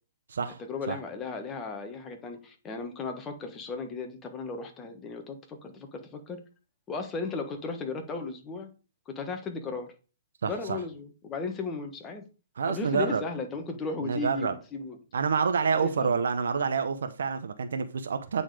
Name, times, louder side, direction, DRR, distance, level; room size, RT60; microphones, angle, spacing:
voice 1, 0.6-6.4 6.9-8.7 9.1-9.9 10.5-12.2 12.7-15.0 15.8-16.1, left 4 dB, 20° left, 1.4 m, -35 dB
voice 2, 10.4-10.8 12.6-13.2 14.0-14.5 15.1-18.4, right 5 dB, 80° right, 0.9 m, -28 dB
9.0 x 4.1 x 4.9 m
hypercardioid pair, 150°, 0 cm